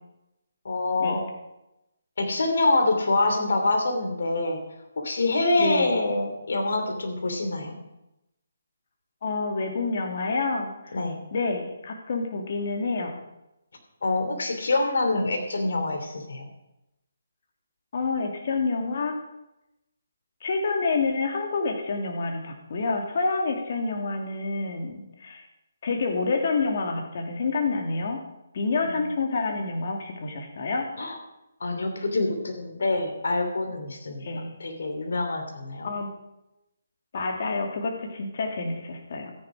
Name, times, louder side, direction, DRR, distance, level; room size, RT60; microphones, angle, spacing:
voice 1, 0.6-1.3 2.2-4.6 5.0-7.8 10.9-11.2 14.0-16.5 28.8-29.1 31.0-31.2 31.6-36.0, left 2 dB, 70° left, 5 dB, 3.0 m, -26 dB
voice 2, 5.6-6.0 9.2-10.7 11.3-13.2 17.9-19.2 20.4-25.5 25.8-28.2 28.5-30.9 34.2-34.6 35.8-36.1 37.1-39.3, left 3 dB, 50° left, 2 dB, 2.6 m, -28 dB
13.5 x 10.5 x 4.9 m, 0.91 s
hypercardioid pair, 155°, 0 cm